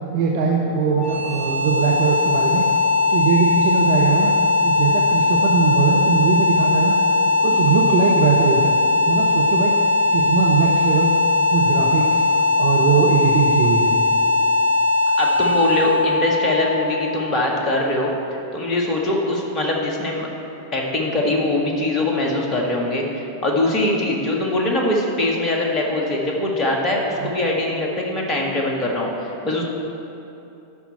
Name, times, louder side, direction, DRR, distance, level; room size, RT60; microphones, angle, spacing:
voice 1, 0.1-2.7 3.1-4.3 4.6-7.0 7.4-8.7 9.1-9.7 10.1-11.1 11.5-12.2 12.6-14.0 27.2-27.3, right 5 dB, 50° right, -2 dB, 0.8 m, -20 dB
sound 1, 0.9-17.8, left 3 dB, 50° left, 2.0 m, -19 dB
voice 2, 15.2-18.1 18.5-20.3 20.7-29.6, left 2 dB, 30° left, -1 dB, 1.7 m, -22 dB
13.0 x 5.9 x 4.4 m, 2.8 s
figure-of-eight pair, 90°, 0 cm